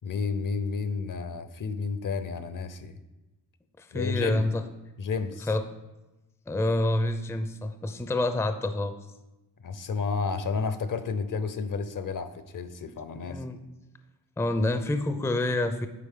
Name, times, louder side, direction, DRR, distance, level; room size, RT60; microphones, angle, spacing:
voice 1, 0.0-2.9 3.9-4.5 5.0-5.5 9.6-13.4, left 4 dB, 55° left, 11 dB, 0.6 m, -31 dB
voice 2, 3.8-4.6 5.5-5.6 6.5-9.0 12.8-12.9 13.2-13.6 14.4-15.9, left 2 dB, 5° left, 9 dB, 0.4 m, -27 dB
8.4 x 4.0 x 3.7 m, 1.0 s
cardioid pair, 70°, 39 cm